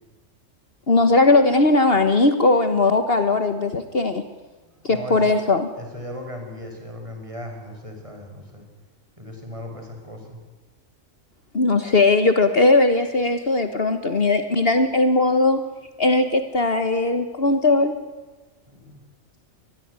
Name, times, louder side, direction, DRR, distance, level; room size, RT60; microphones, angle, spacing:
voice 1, 0.9-4.2 4.8-5.7 11.5-15.6 16.0-17.9, left 2 dB, 50° left, 9 dB, 1.6 m, -19 dB
voice 2, 4.6-5.3 5.8-8.6 9.2-10.4 18.7-19.0, left 1 dB, 25° right, 3 dB, 6.0 m, -37 dB
24.0 x 20.5 x 9.6 m, 1.2 s
omnidirectional pair, 1.3 m